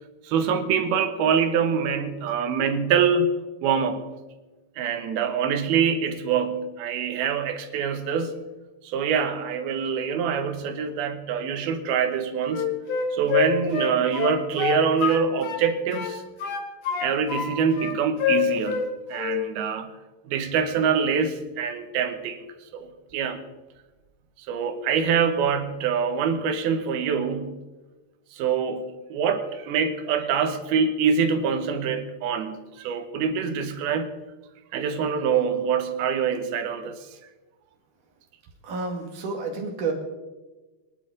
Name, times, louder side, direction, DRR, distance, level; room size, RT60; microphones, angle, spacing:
voice 1, 0.2-3.3 3.6-4.1 4.8-8.4 8.8-12.7 13.1-16.2 17.0-19.9 20.3-22.5 22.7-23.4 24.5-27.6 28.3-34.1 34.7-37.0, right 6 dB, 75° right, 8 dB, 2.8 m, -25 dB
Wind instrument woodwind instrument, 12.5-15.6 15.9-17.5 17.7-18.9 19.1-19.4, left 7 dB, 55° left, 1.9 m, -26 dB
voice 2, 38.6-39.9, right 4 dB, 55° right, 2 dB, 3.3 m, -30 dB
23.0 x 11.5 x 3.8 m, 1.2 s
omnidirectional pair, 4.7 m